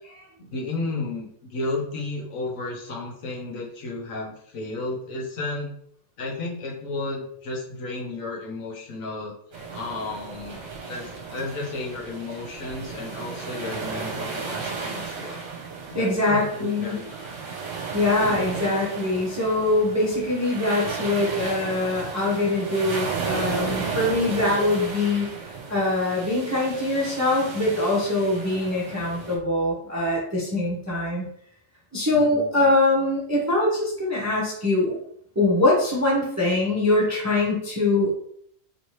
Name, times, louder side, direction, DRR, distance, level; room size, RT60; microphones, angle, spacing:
voice 1, 0.4-5.7 6.2-9.3 9.7-15.4 15.9-17.3 18.2-18.6 32.1-32.7, left 2 dB, 70° left, -2 dB, 1.2 m, -33 dB
sound 1, 9.5-29.4, right 4 dB, 60° right, 1.0 m, -34 dB
voice 2, 15.9-17.0 17.9-25.3 25.7-31.2 31.9-35.0 35.4-38.1, left 2 dB, 15° right, -5 dB, 0.5 m, -23 dB
3.2 x 2.8 x 3.0 m, 0.66 s
omnidirectional pair, 1.5 m